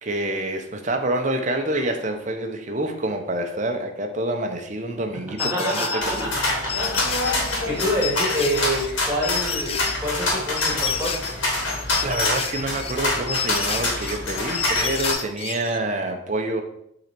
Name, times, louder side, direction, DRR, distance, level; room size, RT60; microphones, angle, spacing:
voice 1, 0.0-6.3 12.0-16.6, right 1 dB, 35° right, 4 dB, 0.9 m, -27 dB
sound 1, 5.4-15.8, left 7 dB, 30° left, 0.5 m, -30 dB
voice 2, 5.4-7.0 7.3-11.2, equal, 10° right, -4 dB, 2.2 m, -27 dB
sound 2, 6.0-15.1, left 2 dB, 65° left, 2.7 m, -26 dB
8.4 x 4.0 x 6.0 m, 0.74 s
head